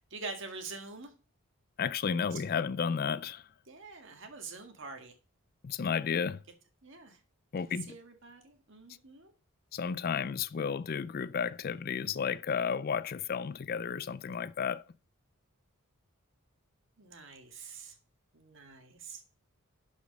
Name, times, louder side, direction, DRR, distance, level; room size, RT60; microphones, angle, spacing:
voice 1, 0.1-1.1 2.3-2.4 3.7-5.1 6.8-7.2 7.9-9.3 17.0-18.0 18.3-19.2, right 4 dB, 55° right, 1.8 m, -45 dB
voice 2, 1.8-3.5 5.6-6.4 7.5-7.9 9.7-14.8, left 6 dB, 40° left, 0.3 m, -32 dB
11.5 x 5.0 x 5.2 m
head